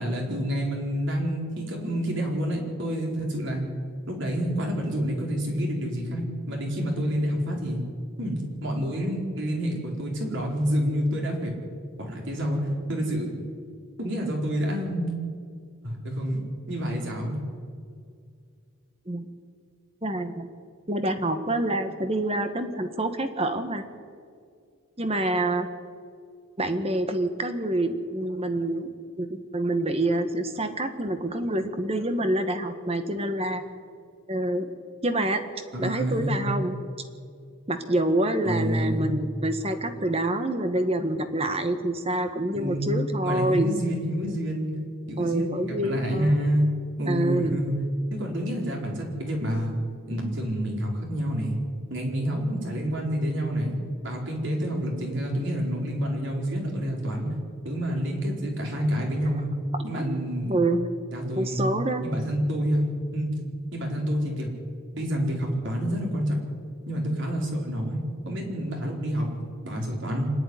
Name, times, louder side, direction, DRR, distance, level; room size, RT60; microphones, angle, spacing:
voice 1, 0.0-3.6 4.1-6.2 6.5-7.8 8.2-11.6 12.0-13.3 14.0-15.2 15.8-16.4 16.7-17.3 35.7-36.5 38.4-39.1 42.5-42.9 43.2-44.7 45.1-46.7 47.0-47.7 48.1-49.7 50.1-51.6 51.9-53.8 54.0-57.3 57.6-59.5 59.8-60.6 61.1-61.7 62.0-63.3 63.7-64.5 65.0-66.4 66.9-68.0 68.3-69.3 69.6-70.3, equal, 60° right, 0 dB, 4.7 m, -28 dB
voice 2, 20.0-20.5 20.9-23.8 25.0-25.7 26.6-33.6 34.3-34.7 35.0-35.4 35.8-36.7 37.7-43.7 45.2-46.3 47.1-47.6 59.9-60.2 60.5-60.9 61.4-62.1, right 1 dB, 30° right, 8 dB, 1.5 m, -27 dB
25.5 x 11.0 x 9.9 m, 2.2 s
head